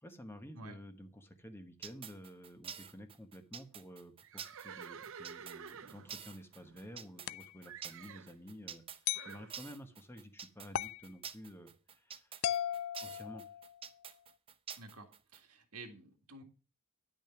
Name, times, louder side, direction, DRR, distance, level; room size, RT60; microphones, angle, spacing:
voice 1, 0.0-8.8 9.2-12.3 13.0-13.5, equal, 10° left, 7 dB, 1.1 m, -51 dB
sound 1, 1.8-15.4, right 7 dB, 25° right, 0.6 m, -48 dB
Livestock farm animals working animals, 4.2-7.3 7.7-8.4 9.1-9.5, right 7 dB, 65° right, 0.7 m, -50 dB
sound 2, 7.3-7.5 9.1-9.4 10.7-11.1 12.4-13.8, left 11 dB, 65° left, 0.4 m, -37 dB
voice 2, 14.8-16.4, right 2 dB, 80° right, 5 dB, 1.8 m, -51 dB
10.5 x 6.4 x 5.9 m, 0.36 s
head